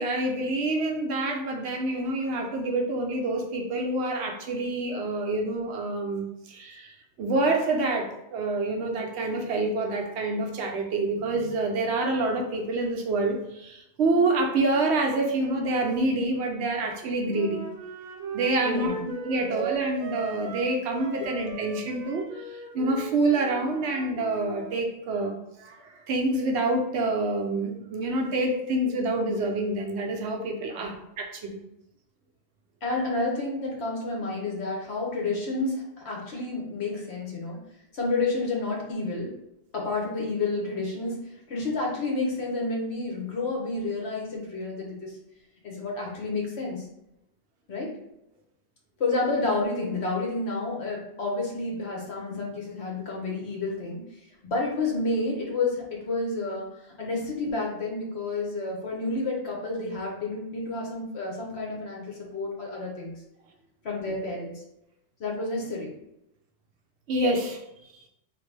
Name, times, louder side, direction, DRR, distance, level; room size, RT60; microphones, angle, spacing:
voice 1, 0.0-17.6 18.3-31.6 67.1-67.6 67.9-68.0, right 2 dB, 70° right, 1 dB, 0.8 m, -27 dB
Wind instrument woodwind instrument, 17.3-24.7, right 4 dB, 35° right, 0.9 m, -37 dB
voice 2, 18.6-19.0 19.3-19.5 30.7-30.9 32.8-37.6 37.9-39.3 39.7-45.2 45.6-46.9 47.7-47.9 49.0-54.0 54.4-56.7 57.0-63.1 63.8-64.5 65.2-65.9, left 3 dB, 65° left, -2 dB, 1.1 m, -30 dB
3.0 x 2.5 x 3.2 m, 0.85 s
omnidirectional pair, 1.2 m